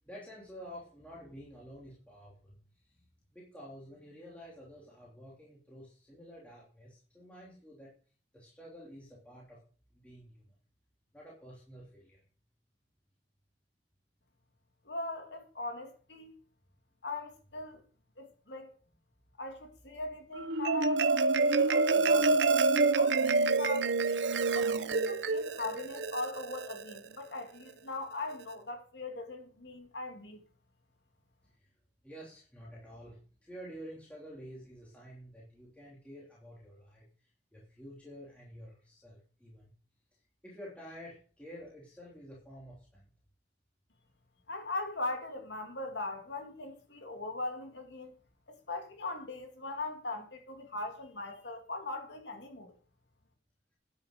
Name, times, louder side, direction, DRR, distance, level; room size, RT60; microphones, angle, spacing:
voice 1, 0.0-2.5 2.8-3.0 3.3-7.9 8.3-9.6 9.9-10.5 11.1-12.2 31.6-31.7 32.0-37.0 37.5-39.7 40.4-43.0, equal, 10° left, 3.2 m, -50 dB
voice 2, 14.9-16.3 17.0-17.8 18.2-18.7 19.4-22.5 23.0-23.9 24.5-30.4 44.5-48.1 48.5-52.7, left 2 dB, 85° left, 2.4 m, -40 dB
Marimba xylophone, 20.4-27.0, right 3 dB, 80° right, 0.6 m, -27 dB
10.5 x 9.1 x 5.0 m
head